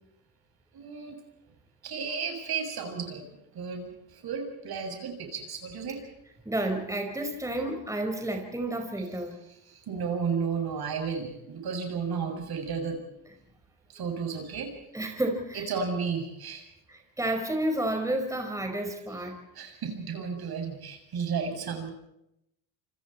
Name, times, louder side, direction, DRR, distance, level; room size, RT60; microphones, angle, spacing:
voice 1, 0.7-1.2 1.8-6.0 9.7-13.0 13.9-14.7 15.5-16.7 19.1-19.2 19.5-21.9, right 6 dB, 50° right, 4 dB, 7.3 m, -33 dB
voice 2, 6.5-9.4 14.9-15.7 16.9-19.4, right 1 dB, 5° right, 4 dB, 5.3 m, -31 dB
28.0 x 25.5 x 4.5 m, 0.81 s
supercardioid pair, 80°, 46 cm